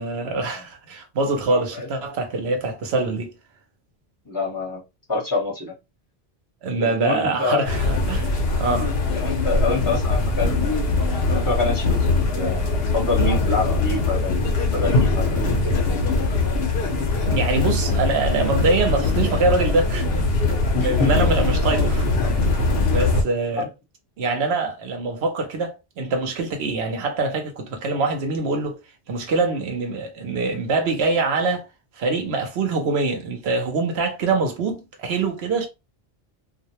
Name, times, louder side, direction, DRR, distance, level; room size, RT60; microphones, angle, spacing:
voice 1, 0.0-3.3 6.6-8.9 9.5-9.6 17.0-20.1 20.8-22.1 22.4-22.6 22.9-23.7 24.2-28.8 29.1-31.7 32.0-35.7, right 3 dB, 90° right, 0.9 m, -24 dB
voice 2, 1.4-1.9 4.2-4.8 5.1-5.7 6.8-7.7 9.1-10.9 11.3-12.0 12.3-12.7 12.9-15.7 20.7-21.3 23.6-23.7, left 3 dB, 20° left, 1.1 m, -26 dB
sound 1, 7.6-23.2, left 3 dB, 75° left, 0.9 m, -21 dB
2.4 x 2.1 x 2.8 m
omnidirectional pair, 1.0 m